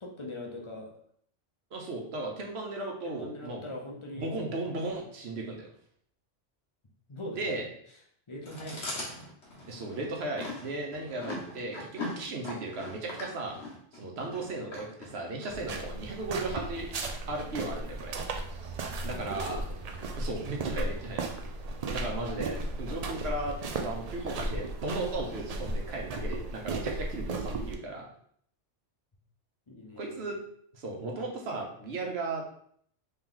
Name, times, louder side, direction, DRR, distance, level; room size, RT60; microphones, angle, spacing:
voice 1, 0.0-0.9 3.0-4.3 4.7-4.9 7.1-7.5 8.3-9.1 19.1-20.2 29.7-30.3, left 1 dB, 30° left, -1 dB, 0.7 m, -42 dB
voice 2, 1.7-3.6 4.1-5.7 7.4-7.6 9.7-13.6 13.9-16.9 17.3-18.1 19.0-19.6 20.2-21.2 21.9-23.6 23.8-28.1 30.0-30.4 30.7-32.4, right 2 dB, 60° right, 0 dB, 1.1 m, -36 dB
Chewing mastication, 8.5-15.5, left 2 dB, 65° left, 1.4 m, -40 dB
sound 1, 15.5-27.7, right 2 dB, 80° right, 0.3 m, -35 dB
3.5 x 3.0 x 3.8 m, 0.64 s
omnidirectional pair, 1.2 m